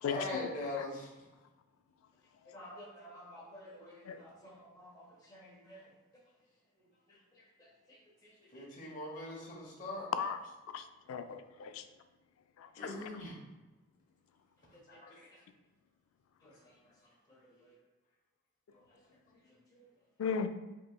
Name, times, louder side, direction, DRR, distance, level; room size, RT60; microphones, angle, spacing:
voice 1, 0.0-1.1 8.5-10.1 12.8-13.4 14.9-15.3, left 2 dB, 35° left, -3 dB, 0.9 m, -40 dB
voice 2, 2.5-3.9 4.2-4.9 5.3-5.8, equal, 20° left, -5 dB, 1.1 m, -51 dB
voice 3, 10.7-11.8 12.6-12.7 20.2-20.5, left 6 dB, 85° left, 9 dB, 0.3 m, -36 dB
5.0 x 3.0 x 2.2 m, 1.1 s
head